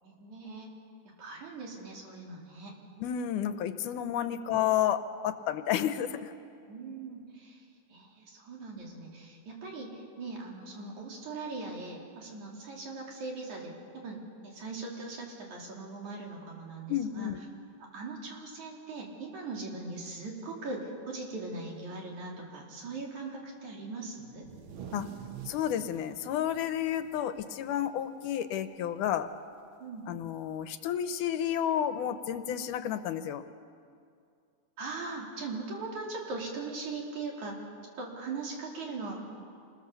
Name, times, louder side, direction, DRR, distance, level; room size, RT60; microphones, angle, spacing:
voice 1, 0.0-0.7 1.2-2.7 4.3-4.4 6.7-17.3 17.8-24.4 29.8-30.1 34.8-37.6 38.0-39.3, right 3 dB, 65° right, -1 dB, 4.5 m, -40 dB
voice 2, 3.0-6.3 16.9-17.4 24.9-25.1 25.5-29.3 30.1-33.4, left 10 dB, 80° left, 10 dB, 2.2 m, -31 dB
sound 1, 24.3-28.1 28.4-28.6 28.9-29.4 30.5-30.6 31.6-31.7, right 9 dB, 80° right, 1.1 m, -47 dB
28.0 x 21.0 x 7.0 m, 2.4 s
omnidirectional pair, 3.7 m